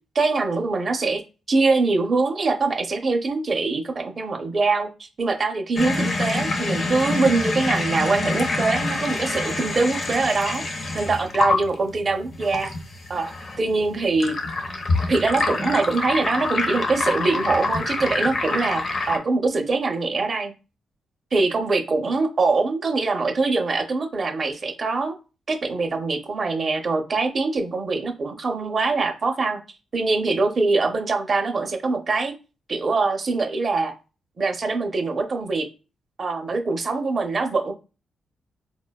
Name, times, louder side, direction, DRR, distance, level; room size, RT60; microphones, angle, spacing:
voice 1, 0.1-1.2 1.5-10.6 10.9-12.7 13.1-14.4 15.1-20.5 21.3-25.1 25.5-29.6 29.9-32.3 32.7-33.9 34.4-35.6 36.2-37.7, right 3 dB, 35° right, 5 dB, 0.5 m, -23 dB
sound 1, 5.8-19.2, left 2 dB, 40° left, 0.5 m, -26 dB
4.2 x 2.2 x 2.2 m, 0.31 s
wide cardioid pair, 140°, 0 cm